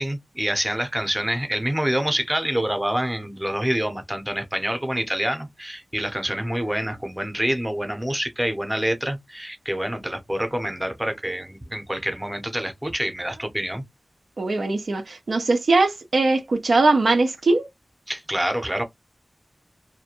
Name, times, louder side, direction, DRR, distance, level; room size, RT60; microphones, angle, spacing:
voice 1, 0.0-13.8 18.1-18.8, right 1 dB, 15° right, 0.7 m, -26 dB
voice 2, 14.4-17.7, right 3 dB, 85° right, 0.5 m, -20 dB
2.4 x 2.2 x 2.8 m
wide cardioid pair, 70°, 0 cm